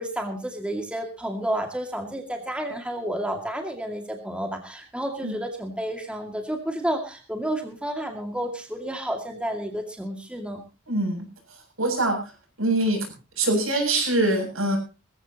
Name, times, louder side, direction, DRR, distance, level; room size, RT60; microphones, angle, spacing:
voice 1, 0.0-10.6, right 1 dB, 5° right, 3 dB, 2.2 m, -31 dB
voice 2, 10.9-11.2 11.8-12.3 12.6-13.0 13.4-14.8, right 2 dB, 80° right, 3 dB, 7.4 m, -23 dB
20.5 x 15.0 x 2.9 m, 0.31 s
head